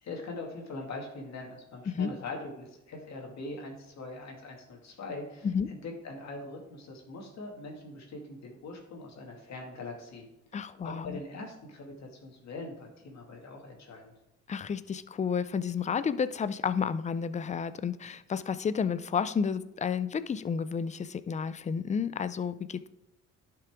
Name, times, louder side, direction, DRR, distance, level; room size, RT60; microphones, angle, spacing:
voice 1, 0.0-10.3 10.5-14.1, left 2 dB, 60° left, 1 dB, 2.3 m, -42 dB
voice 2, 10.5-11.2 14.5-22.9, left 6 dB, 25° left, 14 dB, 0.4 m, -31 dB
11.0 x 5.8 x 3.6 m, 0.89 s
cardioid pair, 90°, 30 cm